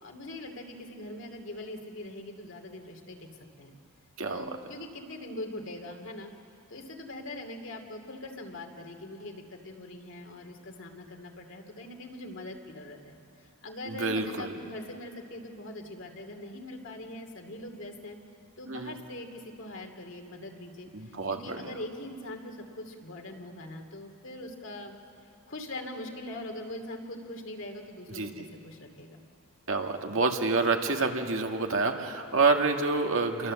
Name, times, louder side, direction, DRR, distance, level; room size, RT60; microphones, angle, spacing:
voice 1, 0.0-3.3 3.6-3.7 4.3-6.3 6.7-18.2 18.6-25.0 25.2-29.2, left 1 dB, 60° left, 3 dB, 2.6 m, -42 dB
voice 2, 14.0-14.5 18.7-18.9 20.9-21.7 28.2-28.3 29.7-33.5, right 3 dB, 65° right, 3 dB, 1.9 m, -27 dB
28.5 x 23.0 x 7.6 m, 2.6 s
head